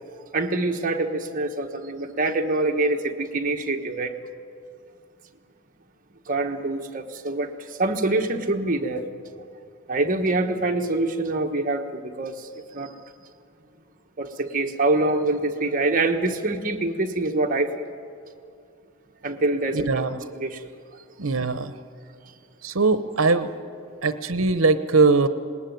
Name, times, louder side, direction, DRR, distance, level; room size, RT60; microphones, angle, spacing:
voice 1, 0.3-4.1 6.3-9.1 9.9-12.9 14.2-17.7 19.2-20.0 20.3-20.6, right 2 dB, 40° right, 3 dB, 1.4 m, -25 dB
voice 2, 19.7-20.2 21.2-21.8 22.6-23.5 24.0-25.3, right 4 dB, 75° right, 12 dB, 1.0 m, -21 dB
20.0 x 19.0 x 9.4 m, 2.4 s
head